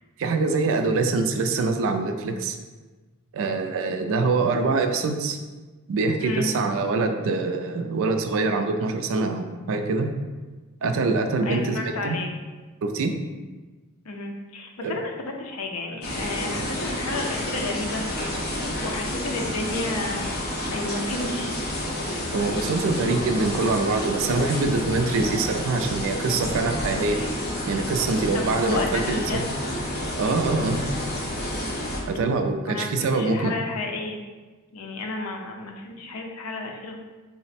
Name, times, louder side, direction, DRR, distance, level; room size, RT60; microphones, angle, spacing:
voice 1, 0.2-2.6 3.3-5.4 5.9-10.1 10.8-12.2 12.8-13.1 14.8-14.9 22.3-27.2 27.7-29.4 30.2-30.8 32.1-33.6, right 3 dB, 65° right, 6 dB, 0.4 m, -24 dB
voice 2, 6.2-6.5 11.5-12.3 14.0-18.1 18.8-21.6 28.3-29.4 32.6-34.2 34.7-37.0, left 2 dB, 75° left, 3 dB, 0.5 m, -32 dB
sound 1, 16.0-32.0, left 1 dB, 45° left, 0.9 m, -29 dB
3.9 x 2.1 x 4.1 m, 1.3 s
head